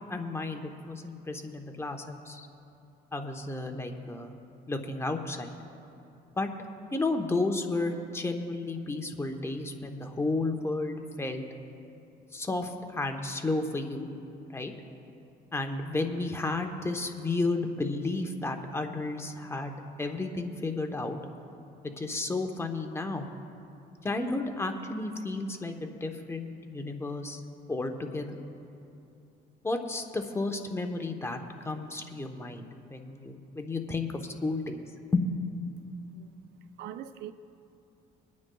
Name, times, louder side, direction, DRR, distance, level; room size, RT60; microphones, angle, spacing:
voice 1, 0.1-2.5 3.1-4.3 4.7-5.6 6.3-6.5 6.9-11.4 12.3-14.1 14.5-14.7 15.5-21.2 21.8-23.3 24.0-27.4 27.7-28.4 29.6-34.8 35.1-35.3, left 2 dB, 15° left, 0.9 m, -32 dB
voice 2, 36.8-37.3, right 11 dB, 80° right, 0.5 m, -41 dB
25.5 x 9.5 x 2.3 m
cardioid pair, 110°, 17 cm